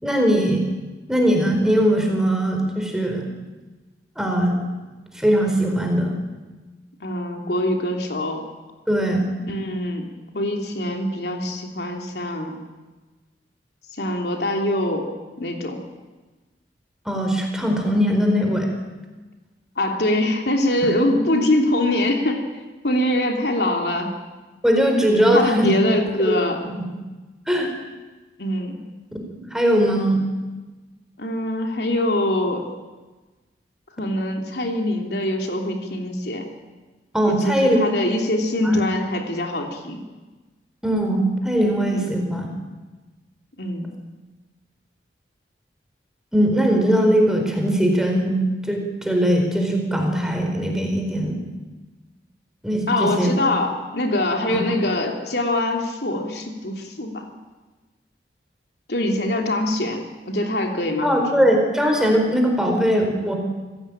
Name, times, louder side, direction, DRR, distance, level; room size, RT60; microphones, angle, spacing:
voice 1, 0.0-0.7 1.1-3.3 4.2-4.7 5.1-6.1 8.9-9.3 17.0-18.7 24.6-25.7 26.2-26.4 26.7-26.8 27.5-27.7 29.5-30.2 37.1-37.8 38.6-38.8 40.8-42.5 46.3-48.4 48.7-51.4 52.6-53.3 54.5-54.6 61.0-63.4, equal, 5° right, 2 dB, 4.4 m, -20 dB
voice 2, 7.0-8.4 9.5-10.1 10.3-12.6 14.0-15.1 15.4-15.8 19.8-22.4 22.8-24.2 25.3-26.6 28.4-28.8 31.2-32.6 34.0-36.5 37.2-40.0 41.9-42.0 43.6-44.0 52.9-57.3 58.9-61.4, left 1 dB, 65° left, 2 dB, 3.2 m, -23 dB
27.5 x 16.5 x 8.9 m, 1.2 s
head